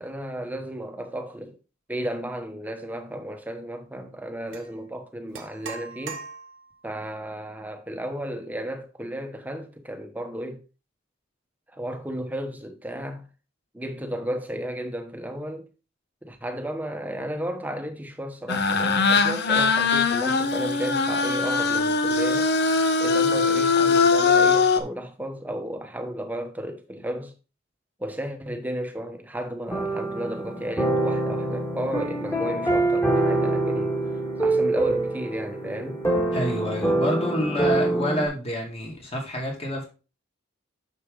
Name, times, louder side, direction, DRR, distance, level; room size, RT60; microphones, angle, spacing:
voice 1, 0.0-1.6 1.9-6.2 6.8-10.6 11.7-13.3 13.7-15.7 16.2-22.5 23.0-27.3 28.0-33.9 34.4-36.0, right 1 dB, 10° right, 1.1 m, -33 dB
sound 1, 4.5-4.7 5.3-6.8, right 5 dB, 65° right, 1.2 m, -39 dB
sound 2, 18.5-24.8, left 4 dB, 55° left, 0.8 m, -21 dB
sound 3, 29.7-38.3, right 2 dB, 15° left, 1.9 m, -25 dB
voice 2, 36.3-39.8, equal, 30° left, 2.6 m, -28 dB
6.6 x 6.6 x 3.7 m
head